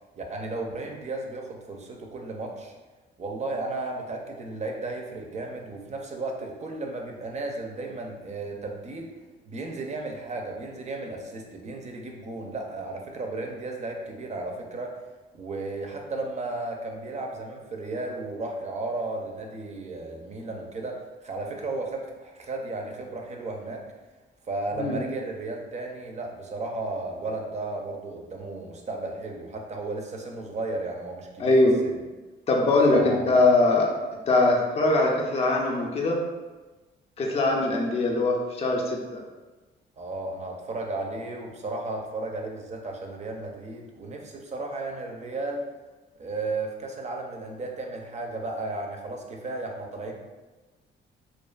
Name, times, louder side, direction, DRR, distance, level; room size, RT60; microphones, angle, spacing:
voice 1, 0.2-2.7 3.2-9.1 9.5-14.9 15.3-23.8 24.5-31.5 31.8-32.0 32.9-33.5 40.0-45.7 46.2-50.1, right 2 dB, 35° right, 1 dB, 0.4 m, -34 dB
voice 2, 31.4-31.8 32.5-33.9 34.3-36.2 37.2-39.0, left 2 dB, 30° left, -1 dB, 0.4 m, -21 dB
2.4 x 2.4 x 2.3 m, 1.2 s
cardioid pair, 90°, 20 cm